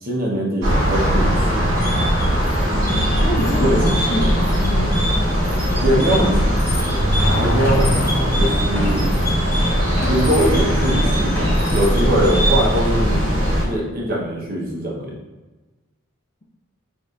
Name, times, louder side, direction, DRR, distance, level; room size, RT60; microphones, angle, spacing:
voice 1, 0.0-1.6 3.6-3.9 5.8-6.4 6.6-7.0 7.4-9.1 10.1-15.1, right 1 dB, 45° right, -3 dB, 0.9 m, -22 dB
sound 1, 0.6-13.6, equal, 70° right, 1.0 m, -19 dB
sound 2, 1.8-12.8, equal, 10° left, 0.9 m, -28 dB
voice 2, 2.7-5.0 5.7-6.5, equal, 35° left, -1 dB, 0.5 m, -26 dB
Car / Accelerating revving vroom, 6.5-8.7, equal, 75° left, 0.8 m, -25 dB
6.1 x 2.6 x 2.4 m, 1.2 s
head